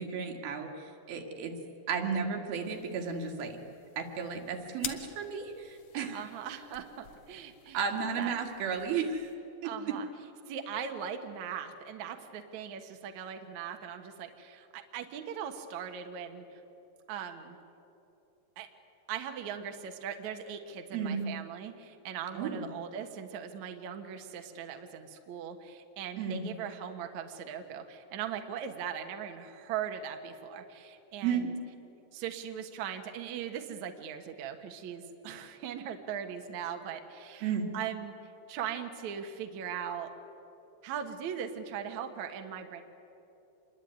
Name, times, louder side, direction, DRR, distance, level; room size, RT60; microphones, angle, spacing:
voice 1, 0.0-1.5 1.9-3.6 4.0-6.3 7.7-9.3 9.6-10.0 20.9-21.2 22.3-22.6 26.2-26.5 31.2-31.5 37.4-37.7, right 6 dB, 80° right, 3 dB, 3.9 m, -33 dB
sound 1, 2.5-9.3, left 7 dB, 60° left, 1.3 m, -48 dB
voice 2, 6.1-7.8 8.2-8.4 9.6-10.1 10.5-16.6 17.1-17.6 18.6-18.7 19.1-31.5 32.1-38.1 38.5-40.1 40.8-42.8, right 8 dB, 60° right, 5 dB, 2.4 m, -39 dB
26.5 x 22.0 x 9.3 m, 3.0 s
omnidirectional pair, 4.2 m